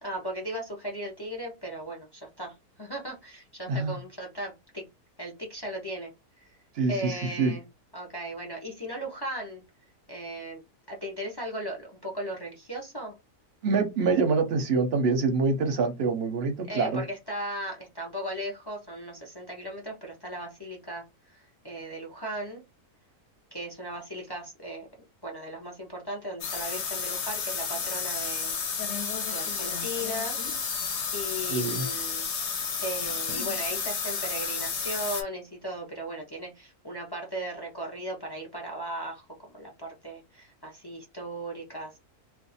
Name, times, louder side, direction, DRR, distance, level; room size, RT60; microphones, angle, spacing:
voice 1, 0.0-4.8 5.2-6.1 6.4-6.5 6.9-7.6 7.9-9.6 10.1-10.6 10.9-13.1 16.7-22.6 23.5-24.9 25.2-28.6 29.3-30.4 31.1-32.3 32.8-39.2 39.5-41.9, right 1 dB, 40° left, 0.3 m, -37 dB
voice 2, 3.7-4.0 6.8-7.5 13.6-17.0 31.5-31.9, right 4 dB, 55° right, 0.7 m, -26 dB
sound 1, 26.4-35.2, left 6 dB, 60° left, 0.9 m, -31 dB
2.5 x 2.3 x 4.0 m
omnidirectional pair, 1.6 m